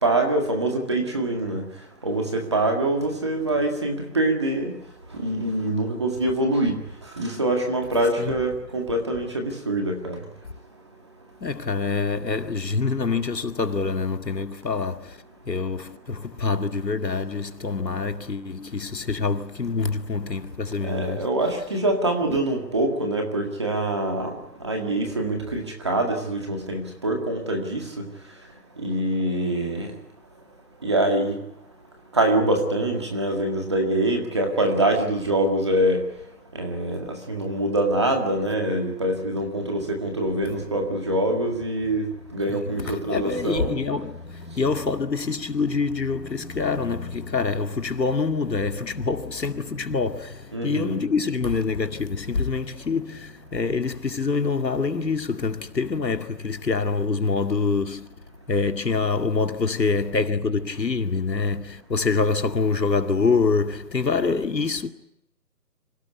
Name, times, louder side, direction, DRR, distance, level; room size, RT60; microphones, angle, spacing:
voice 1, 0.0-1.6 2.0-4.7 5.1-6.8 7.2-10.2 20.8-28.0 28.8-29.9 30.8-31.4 32.1-36.0 36.5-43.8 50.5-51.0, right 1 dB, 15° right, 1.9 m, -24 dB
voice 2, 11.4-15.2 15.5-21.3 22.3-22.4 40.5-40.6 42.5-58.1 58.5-64.9, left 4 dB, 80° left, 2.3 m, -26 dB
26.5 x 18.0 x 9.4 m
hypercardioid pair, 175°, 49 cm